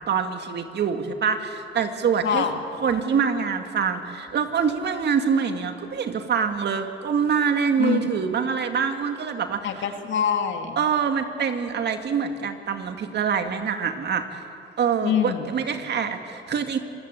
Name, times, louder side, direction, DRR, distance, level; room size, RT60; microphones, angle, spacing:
voice 1, 0.1-2.5 2.8-9.7 10.8-14.4 14.8-16.8, right 6 dB, 60° right, 6 dB, 2.1 m, -25 dB
voice 2, 9.6-10.8 15.0-15.5, left 8 dB, 70° left, 5 dB, 2.4 m, -24 dB
26.0 x 19.0 x 8.4 m, 2.8 s
cardioid pair, 90°, 20 cm